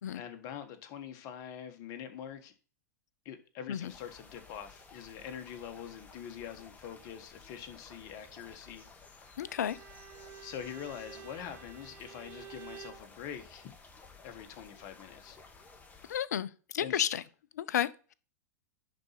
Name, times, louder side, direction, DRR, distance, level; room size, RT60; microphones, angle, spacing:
voice 1, 0.1-2.5 3.2-9.1 10.4-13.7 14.2-15.4 16.8-17.0, left 9 dB, 45° left, 1.3 m, -44 dB
sound 1, 3.9-16.2, left 4 dB, 15° left, 1.3 m, -55 dB
voice 2, 9.4-9.8 16.1-17.2 17.5-18.1, left 10 dB, 70° left, 0.5 m, -32 dB
Bowed string instrument, 9.4-13.1, right 8 dB, 20° right, 1.3 m, -50 dB
10.5 x 4.2 x 4.0 m
hypercardioid pair, 100°, 9 cm